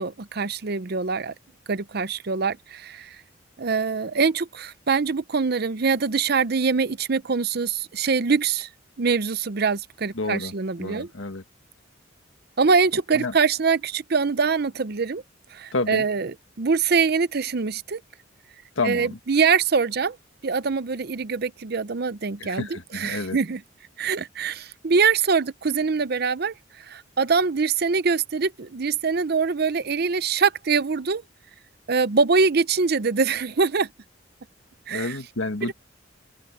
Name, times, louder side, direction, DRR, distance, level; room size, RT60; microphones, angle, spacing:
voice 1, 0.0-1.3 1.7-3.2 3.6-8.7 9.0-11.1 12.6-15.2 15.5-18.0 18.8-20.2 20.4-23.6 24.0-31.2 31.9-33.9 34.9-35.2 35.6-35.7, right 5 dB, 50° right, 0.6 m, -24 dB
voice 2, 10.1-10.5 10.8-11.4 13.1-13.3 15.7-16.0 18.8-19.2 22.4-23.4 34.9-35.7, left 3 dB, 80° left, 1.6 m, -29 dB
head